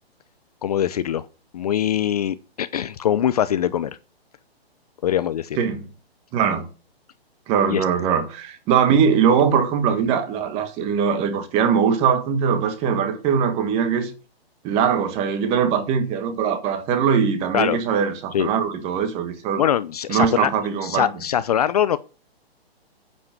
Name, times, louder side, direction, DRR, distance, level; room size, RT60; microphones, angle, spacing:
voice 1, 0.6-1.3 1.5-3.9 5.0-5.6 7.7-7.8 17.5-17.8 18.3-18.5 19.6-20.5 20.8-22.0, left 10 dB, 40° left, 0.7 m, -22 dB
voice 2, 5.6-5.9 6.3-6.7 7.5-14.1 14.6-19.6 20.1-21.1, right 7 dB, 20° right, 1.6 m, -21 dB
9.9 x 8.7 x 7.5 m
hypercardioid pair, 160°, 32 cm